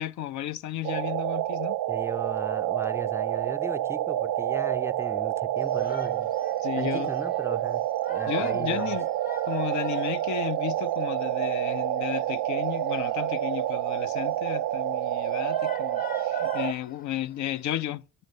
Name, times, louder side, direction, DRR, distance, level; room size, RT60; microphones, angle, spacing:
voice 1, 0.0-1.8 6.6-7.1 8.3-9.1 9.5-18.0, left 12 dB, 70° left, 0.5 m, -33 dB
sound 1, 0.8-16.7, right 13 dB, 85° right, 0.6 m, -28 dB
voice 2, 1.9-6.3 6.8-9.0, right 2 dB, 10° right, 0.4 m, -37 dB
Shout, 5.6-17.7, left 8 dB, 30° left, 0.8 m, -48 dB
10.5 x 5.5 x 6.5 m
cardioid pair, 90°, 30 cm